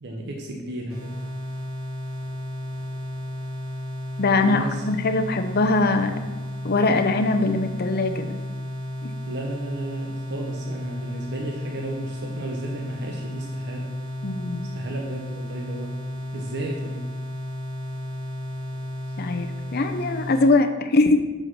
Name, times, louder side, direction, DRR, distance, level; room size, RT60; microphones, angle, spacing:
voice 1, 0.0-1.2 4.4-4.8 9.3-13.9 14.7-16.0 16.3-17.1, right 2 dB, 55° right, 1 dB, 0.8 m, -34 dB
sound 1, 0.9-20.5, left 1 dB, 90° right, 2.5 m, -33 dB
voice 2, 4.2-6.2 6.6-8.4 9.0-9.1 14.2-14.7 19.2-21.2, left 3 dB, 50° left, 7 dB, 0.6 m, -22 dB
6.3 x 5.1 x 5.9 m, 1.2 s
head